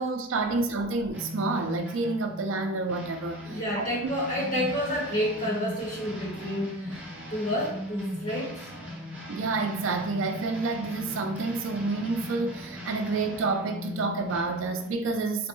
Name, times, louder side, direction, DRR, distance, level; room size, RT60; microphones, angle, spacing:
voice 1, 0.0-4.1 9.3-15.5, right 3 dB, 80° right, 5 dB, 0.4 m, -29 dB
sound 1, 1.1-14.9, left 1 dB, 5° right, 0.9 m, -39 dB
voice 2, 3.4-7.0 7.3-8.6, equal, 40° left, -6 dB, 1.3 m, -30 dB
4.1 x 2.2 x 3.0 m, 0.71 s
head